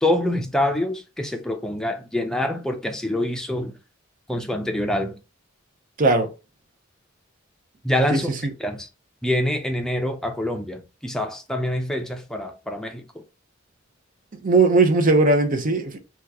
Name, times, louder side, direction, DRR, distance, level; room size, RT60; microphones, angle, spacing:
voice 1, 0.0-3.7 4.3-5.2 7.8-8.3 8.6-8.9 9.2-13.2, left 1 dB, 5° left, 0.5 m, -25 dB
voice 2, 6.0-6.3 8.1-8.2 14.4-16.0, right 3 dB, 45° right, 0.6 m, -18 dB
2.9 x 2.3 x 3.5 m
head